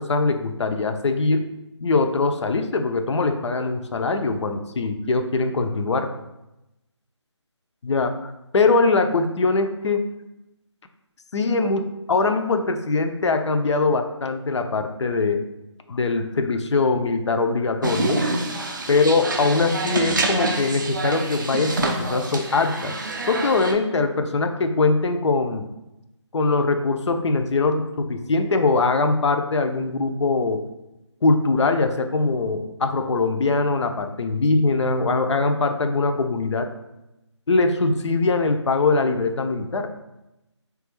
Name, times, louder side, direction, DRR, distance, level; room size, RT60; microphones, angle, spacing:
voice 1, 0.0-1.5 1.8-6.1 7.8-10.0 11.3-15.4 15.9-18.2 18.9-23.0 23.3-25.6 26.3-30.6 31.2-36.7 37.5-39.9, left 3 dB, 70° left, 7 dB, 0.4 m, -22 dB
sound 1, 17.8-23.7, right 2 dB, 40° right, 0.3 m, -26 dB
3.3 x 2.3 x 2.9 m, 0.92 s
figure-of-eight pair, 165°, 15 cm